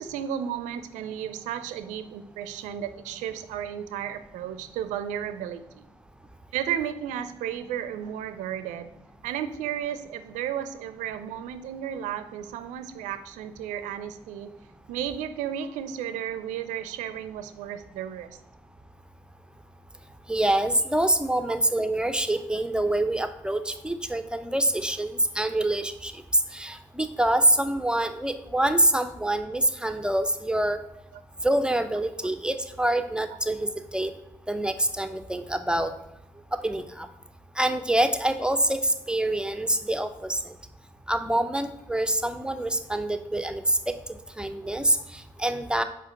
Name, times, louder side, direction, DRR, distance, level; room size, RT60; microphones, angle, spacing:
voice 1, 0.0-5.8 6.5-8.9 9.2-14.5 14.9-18.3 31.1-31.2, right 9 dB, 75° right, 12 dB, 0.5 m, -33 dB
voice 2, 20.3-30.8 31.4-34.1 34.5-35.9 36.5-37.1 37.6-40.5 41.1-43.9 44.4-45.8, right 1 dB, 5° right, 9 dB, 0.6 m, -26 dB
5.0 x 4.5 x 5.6 m, 0.86 s
hypercardioid pair, 50°, 13 cm